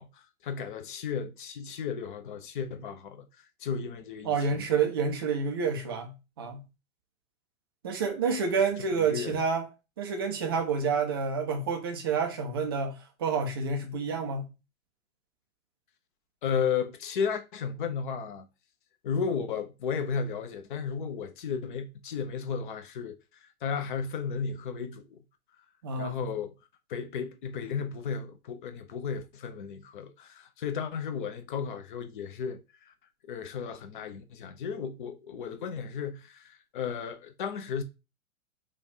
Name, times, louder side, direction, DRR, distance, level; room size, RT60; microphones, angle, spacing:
voice 1, 0.0-4.6 8.9-9.4 16.4-18.5 19.0-25.2 26.0-26.5 26.9-32.9 33.2-37.8, left 6 dB, 35° left, 0.6 m, -34 dB
voice 2, 4.2-6.6 7.8-9.7 10.0-14.5 25.8-26.2, right 5 dB, 20° right, 0.4 m, -29 dB
3.3 x 2.4 x 4.0 m
figure-of-eight pair, 115°, 43 cm